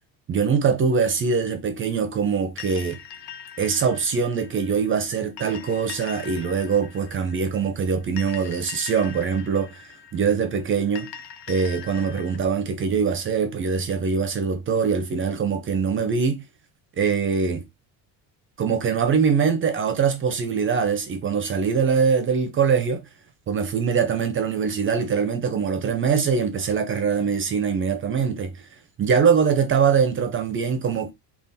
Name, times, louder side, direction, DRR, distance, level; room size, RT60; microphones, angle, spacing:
voice 1, 0.3-3.0 3.6-11.1 11.5-16.4 17.0-17.6 18.6-23.0 23.5-28.7 29.0-31.1, right 6 dB, 30° right, 0.5 m, -23 dB
sound 1, 2.6-12.4, left 9 dB, 85° left, 0.9 m, -42 dB
3.5 x 2.3 x 4.0 m
cardioid pair, 150°, 40 cm